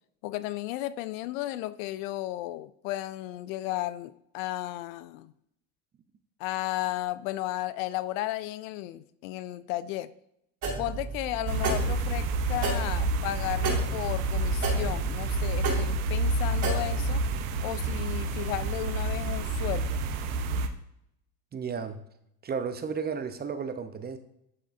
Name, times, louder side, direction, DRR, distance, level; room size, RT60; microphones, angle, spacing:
voice 1, 0.2-5.3 6.4-10.1 10.8-17.2 17.6-20.0, left 16 dB, 75° left, 16 dB, 0.5 m, -34 dB
sound 1, 10.6-17.4, right 4 dB, 45° right, 2.4 m, -34 dB
sound 2, 11.5-20.7, right 2 dB, 85° right, 0.7 m, -29 dB
voice 2, 21.5-22.0 22.4-24.2, right 6 dB, 25° right, 9 dB, 0.6 m, -33 dB
11.0 x 3.7 x 2.5 m, 0.78 s
supercardioid pair, 95°, 40 cm